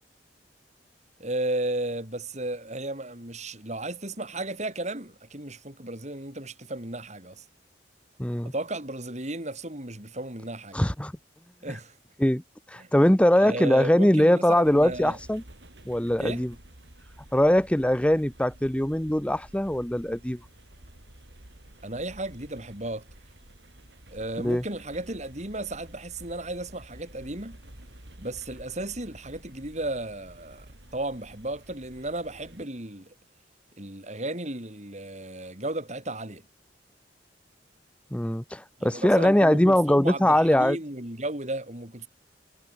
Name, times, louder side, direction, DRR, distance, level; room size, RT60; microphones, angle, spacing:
voice 1, 1.2-7.4 8.4-10.8 11.6-11.9 12.8-12.9 13.3-15.2 16.2-16.4 21.8-23.1 24.1-27.6 28.2-33.1 33.8-36.4 38.8-42.1, right 1 dB, 40° right, 5.9 m, -34 dB
voice 2, 8.2-8.5 10.7-11.1 12.2-12.4 12.7-15.4 15.9-16.5 17.3-20.4 24.4-24.6 38.1-40.8, left 1 dB, 5° left, 0.7 m, -22 dB
sound 1, 14.6-32.7, right 1 dB, 70° right, 3.9 m, -50 dB
head